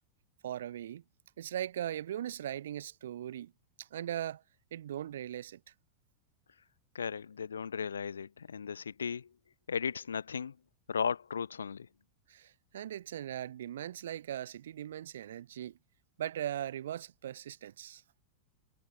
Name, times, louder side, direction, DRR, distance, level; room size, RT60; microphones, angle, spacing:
voice 1, 0.4-1.0 1.4-3.5 3.8-4.4 4.7-5.6 12.3-15.8 16.2-18.0, right 11 dB, 60° right, 0.5 m, -39 dB
voice 2, 6.9-9.3 9.7-10.5 10.9-11.9, left 6 dB, 70° left, 1.0 m, -36 dB
figure-of-eight pair, 90°, 0 cm